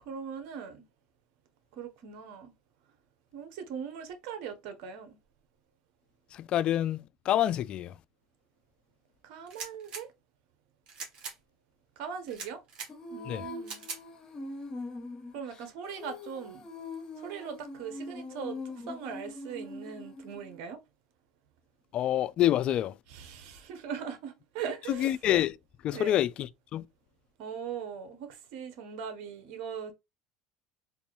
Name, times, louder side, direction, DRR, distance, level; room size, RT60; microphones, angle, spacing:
voice 1, 0.0-0.8 1.7-2.5 3.3-5.2 9.2-10.1 12.0-12.6 13.1-13.8 15.3-16.7 17.2-20.8 23.1-25.2 25.9-26.2 27.4-29.9, right 7 dB, 70° right, 1.0 m, -40 dB
voice 2, 6.3-7.9 13.3-13.5 21.9-22.9 24.9-25.6 25.8-26.8, left 12 dB, 50° left, 0.3 m, -27 dB
sound 1, 9.5-10.0 10.9-11.4 12.3-12.9 13.6-14.0, right 5 dB, 50° right, 1.6 m, -41 dB
Female singing, 12.9-20.6, left 2 dB, 35° left, 1.1 m, -42 dB
3.6 x 2.6 x 3.1 m
supercardioid pair, 90°, 2 cm